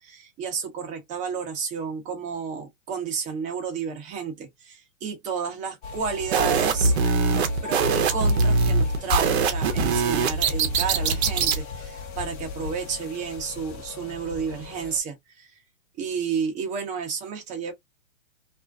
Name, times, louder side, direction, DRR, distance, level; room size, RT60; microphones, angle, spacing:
voice 1, 0.0-15.5 16.0-17.7, right 6 dB, 20° right, 0.7 m, -32 dB
sound 1, 5.8-15.0, left 5 dB, 40° left, 0.8 m, -35 dB
sound 2, 6.3-11.6, right 4 dB, 50° right, 0.7 m, -22 dB
2.5 x 2.3 x 2.2 m
hypercardioid pair, 135°, 40 cm